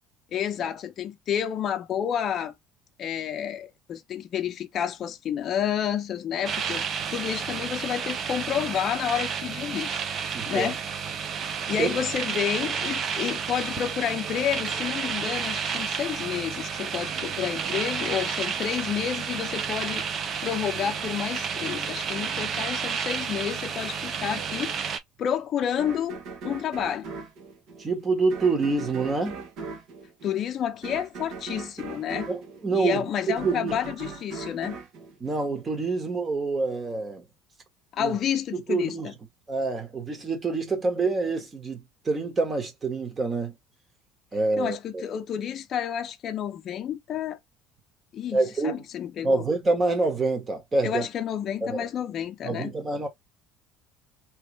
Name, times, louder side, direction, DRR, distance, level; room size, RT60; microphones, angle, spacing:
voice 1, 0.3-2.5 3.0-6.8 7.1-10.0 10.5-10.8 11.7-20.0 20.4-24.7 25.2-26.2 26.4-27.1 30.2-32.3 32.7-34.8 37.9-39.1 44.6-47.4 48.1-49.5 50.8-52.7, left 9 dB, 40° left, 0.5 m, -30 dB
sound 1, 6.4-25.0, right 6 dB, 40° right, 0.5 m, -31 dB
voice 2, 10.3-10.7 11.8-11.9 27.8-29.4 32.3-33.1 33.4-33.7 35.2-37.2 38.0-38.2 38.5-39.1 39.5-43.5 44.3-45.0 48.3-48.8 49.2-51.1 51.6-51.9 52.4-53.1, right 3 dB, 25° right, 1.3 m, -26 dB
sound 2, 25.8-36.0, right 4 dB, 60° right, 1.1 m, -40 dB
3.1 x 2.9 x 3.1 m
cardioid pair, 140°, 0 cm